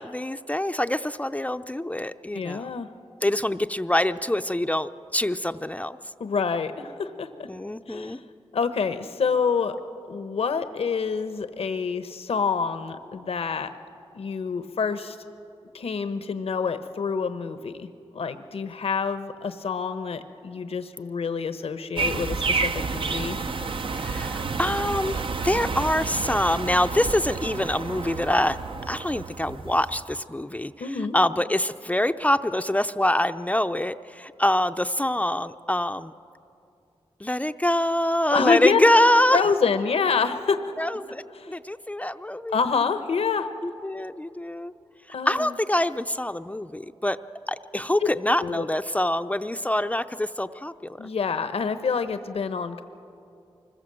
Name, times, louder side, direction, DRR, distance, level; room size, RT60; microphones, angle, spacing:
voice 1, 0.0-2.8 3.2-6.0 7.5-8.2 24.0-28.6 28.9-30.9 31.1-36.1 37.2-39.4 40.8-42.6 43.6-44.7 45.3-47.2 47.5-51.1, left 1 dB, 15° left, 9 dB, 0.6 m, -25 dB
voice 2, 2.3-2.9 6.2-7.5 7.9-8.2 8.5-9.8 10.1-13.7 14.1-15.2 15.7-23.4 30.8-31.2 38.3-38.8 39.3-40.7 41.3-41.6 42.5-43.5 45.1-45.5 48.0-48.1 48.4-48.7 51.0-52.8, left 5 dB, 75° left, 10 dB, 1.0 m, -27 dB
sound 1, 22.0-30.2, right 4 dB, 60° right, 0.8 m, -30 dB
24.5 x 21.0 x 7.7 m, 2.6 s
cardioid pair, 60°, 10 cm